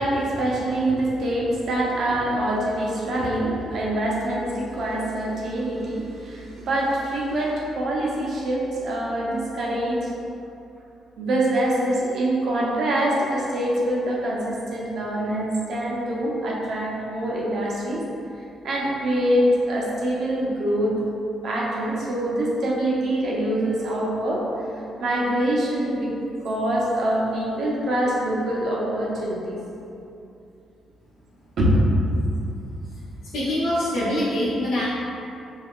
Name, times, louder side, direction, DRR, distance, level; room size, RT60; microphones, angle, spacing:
voice 1, 0.0-10.1 11.2-18.0 18.6-21.0 21.4-24.4 25.0-26.1 26.4-29.6 31.6-31.8, right 1 dB, 65° right, -4 dB, 0.8 m, -24 dB
voice 2, 32.8-34.8, left 1 dB, 85° left, -11 dB, 0.7 m, -25 dB
5.0 x 2.7 x 2.4 m, 2.7 s
cardioid pair, 90°, 0 cm